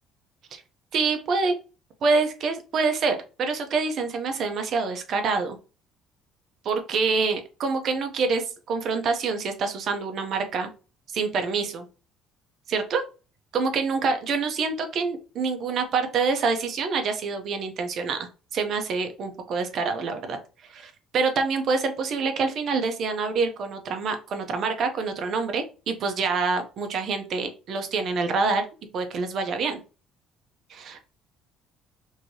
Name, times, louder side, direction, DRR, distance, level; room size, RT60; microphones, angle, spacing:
voice 1, 0.9-1.5 2.0-5.6 6.6-10.7 11.1-11.8 12.7-13.0 13.5-20.4 20.7-28.6 28.9-29.8 30.7-31.0, right 4 dB, 45° right, 6 dB, 0.6 m, -26 dB
3.1 x 2.7 x 2.7 m, 0.34 s
cardioid pair, 155°, 0 cm